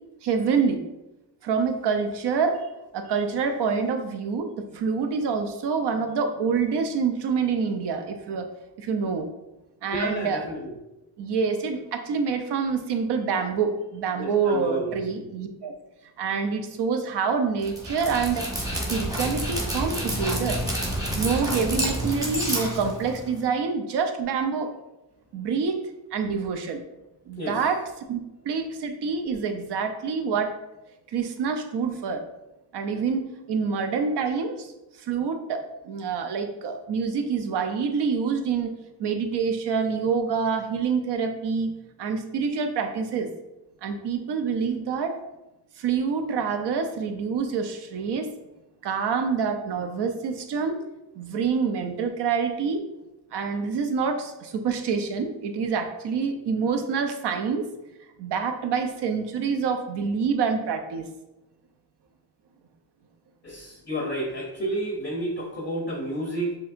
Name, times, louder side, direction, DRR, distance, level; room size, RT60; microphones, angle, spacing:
voice 1, 0.2-0.8 1.4-2.7 2.9-8.5 8.8-9.3 9.8-10.4 11.2-15.7 16.2-18.5 18.9-20.6 21.2-24.7 25.3-25.8 26.1-26.8 27.3-30.5 31.1-32.2 32.7-34.7 35.0-38.7 39.0-43.3 43.8-45.2 45.8-48.3 48.8-50.8 51.2-52.8 53.3-57.7 58.2-61.1, right 5 dB, 65° right, 6 dB, 0.6 m, -26 dB
voice 2, 9.9-10.7 14.2-15.0 27.4-27.6 63.4-66.5, right 1 dB, 25° left, 0 dB, 0.5 m, -30 dB
Dog, 17.6-23.4, equal, 10° right, 0.8 m, -29 dB
7.3 x 2.9 x 2.5 m, 0.96 s
wide cardioid pair, 175°, 44 cm